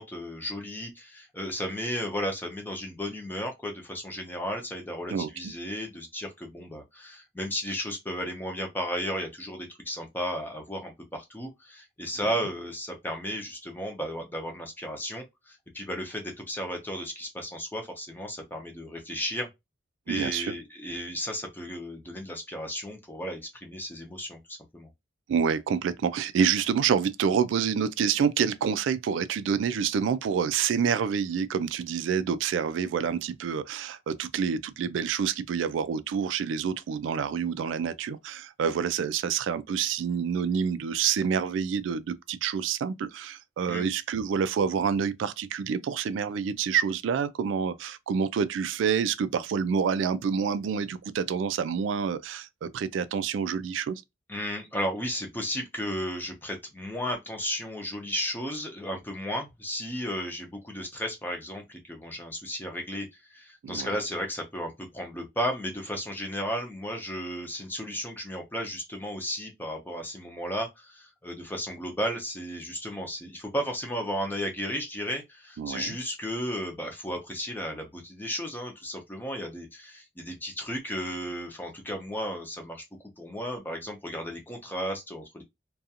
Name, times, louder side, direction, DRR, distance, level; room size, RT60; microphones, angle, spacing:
voice 1, 0.0-19.5 20.1-24.9 43.7-43.9 54.3-82.8 83.2-85.4, equal, 10° left, 0.5 m, -34 dB
voice 2, 5.1-5.5 20.1-20.5 25.3-54.0 63.6-63.9 75.6-75.9, right 7 dB, 80° right, 0.3 m, -28 dB
2.4 x 2.3 x 2.7 m
head